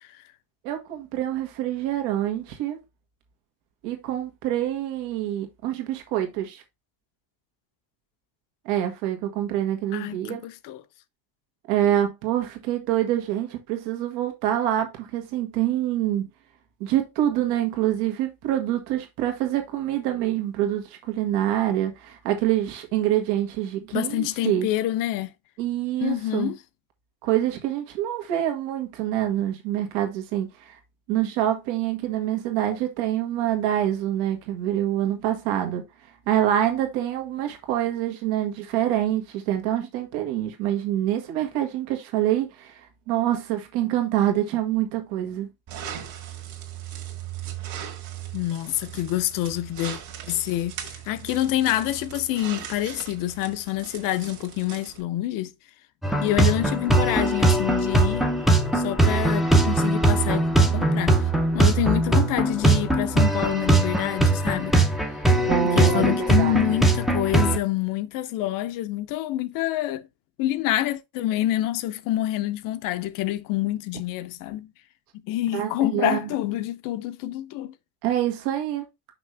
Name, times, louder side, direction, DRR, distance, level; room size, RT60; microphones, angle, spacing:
voice 1, 0.6-2.8 3.8-6.6 8.6-10.4 11.7-16.3 16.8-24.7 25.6-26.5 27.2-30.8 31.1-35.8 36.3-45.5 65.5-66.8 75.5-76.3 78.0-78.8, right 12 dB, 80° right, 1.8 m, -26 dB
voice 2, 9.9-10.8 23.9-25.3 26.0-26.6 48.3-50.0 50.3-55.5 56.2-58.2 58.7-61.2 61.5-64.8 65.8-70.1 70.4-74.7 75.1-77.7, left 14 dB, 55° left, 0.6 m, -27 dB
sound 1, 45.7-55.0, right 10 dB, 45° right, 1.8 m, -38 dB
sound 2, 56.0-67.6, right 2 dB, ahead, 0.5 m, -21 dB
6.0 x 5.6 x 3.3 m
cardioid pair, 180°, 41 cm